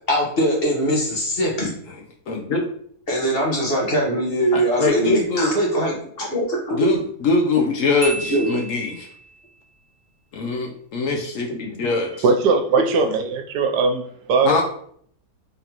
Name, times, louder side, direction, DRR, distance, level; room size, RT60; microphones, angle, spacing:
voice 1, 0.0-1.7 3.1-6.8 8.3-8.5, equal, 40° left, -2 dB, 1.1 m, -22 dB
voice 2, 2.3-2.6 4.5-5.5 6.7-9.1 10.3-12.1 14.4-14.6, left 3 dB, 65° left, 1 dB, 0.9 m, -22 dB
Marimba xylophone, 8.0-9.4, right 4 dB, 50° right, 0.6 m, -33 dB
voice 3, 12.2-14.0 14.3-14.6, right 4 dB, 85° right, 4 dB, 1.2 m, -19 dB
3.8 x 3.5 x 2.8 m, 0.62 s
omnidirectional pair, 1.7 m